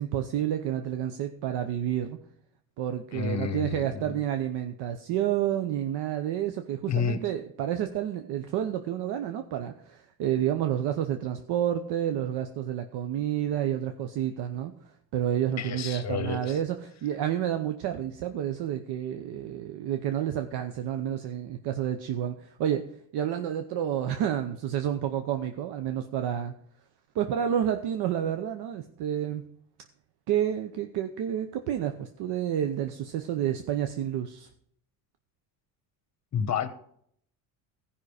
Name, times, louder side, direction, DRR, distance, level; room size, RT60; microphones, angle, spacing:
voice 1, 0.0-2.2 2.8-14.7 15.1-22.8 23.1-26.5 27.1-29.4 30.3-34.5, right 10 dB, 75° right, 7 dB, 0.8 m, -29 dB
voice 2, 3.1-4.2 6.9-7.2 15.6-16.6 36.3-36.7, left 7 dB, 40° left, 11 dB, 1.2 m, -30 dB
14.5 x 5.6 x 4.9 m, 0.67 s
cardioid pair, 105°, 40 cm